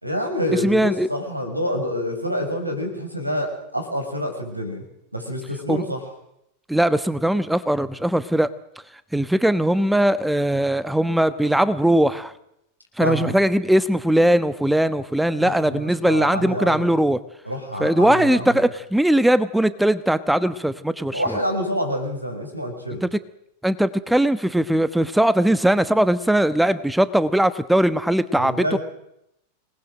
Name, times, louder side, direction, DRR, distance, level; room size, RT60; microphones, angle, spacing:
voice 1, 0.0-4.8 5.1-6.0 13.0-13.4 15.4-16.9 17.4-18.6 21.1-23.0 28.4-28.8, equal, 85° right, 5 dB, 6.4 m, -27 dB
voice 2, 0.6-1.1 5.7-5.8 6.7-8.5 9.1-12.3 13.0-17.2 17.8-21.2 23.0-23.1 23.6-28.8, right 1 dB, 5° right, 15 dB, 1.2 m, -20 dB
26.5 x 19.5 x 7.8 m, 0.78 s
figure-of-eight pair, 90°, 0 cm